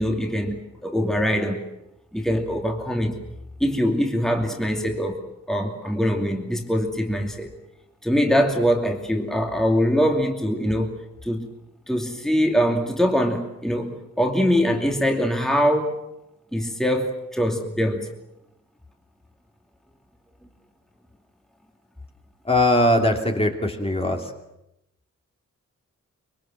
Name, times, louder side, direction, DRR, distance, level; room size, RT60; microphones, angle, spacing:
voice 1, 0.0-1.6 2.1-3.2 3.6-5.2 5.5-7.5 8.0-11.0 11.2-11.5 11.9-16.0 16.5-18.1, equal, ahead, 2 dB, 2.7 m, -23 dB
voice 2, 22.4-24.3, left 1 dB, 20° left, 2 dB, 2.8 m, -20 dB
24.5 x 23.5 x 7.6 m, 0.87 s
wide cardioid pair, 135°, 30 cm